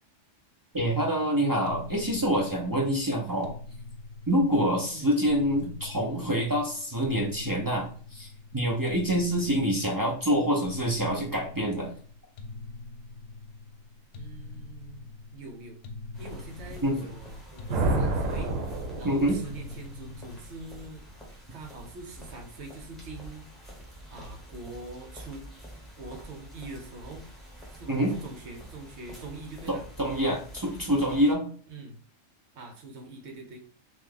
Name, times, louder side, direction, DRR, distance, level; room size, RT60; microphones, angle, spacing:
voice 1, 0.7-3.5 4.3-11.9 16.8-17.0 19.0-19.4 27.9-28.1 29.7-31.5, equal, 35° right, -2 dB, 0.3 m, -26 dB
sound 1, 1.7-21.0, left 3 dB, 70° left, 0.9 m, -44 dB
voice 2, 14.1-15.8 16.2-18.6 19.0-21.1 21.5-23.7 24.1-25.5 26.0-27.3 27.7-30.4 31.7-32.0 32.5-33.6, right 2 dB, 60° right, 3 dB, 1.1 m, -44 dB
sound 2, 16.1-31.3, equal, ahead, 0.9 m, -47 dB
sound 3, 17.7-19.7, right 2 dB, 80° right, 1.0 m, -28 dB
3.1 x 2.5 x 3.8 m, 0.43 s
omnidirectional pair, 1.3 m